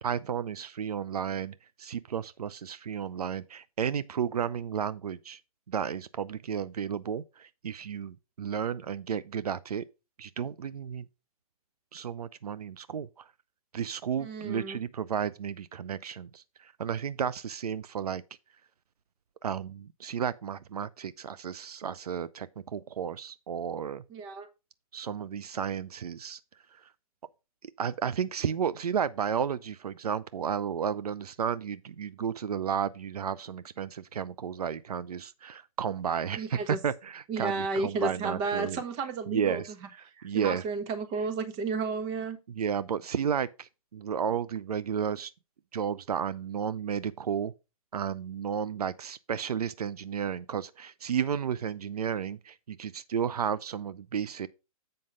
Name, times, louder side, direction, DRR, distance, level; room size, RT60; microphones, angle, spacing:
voice 1, 0.0-5.4 5.7-9.8 10.2-11.0 11.9-13.3 13.7-18.2 19.4-24.0 24.9-26.4 27.6-38.8 39.3-39.7 40.0-40.6 42.5-45.3 45.7-47.5 47.9-54.5, right 8 dB, 90° right, 0.6 m, -32 dB
voice 2, 14.2-14.8 24.1-24.5 36.4-36.8 37.3-39.9 40.2-42.4, right 4 dB, 25° right, 1.4 m, -32 dB
7.8 x 5.3 x 4.9 m
hypercardioid pair, 145°, 19 cm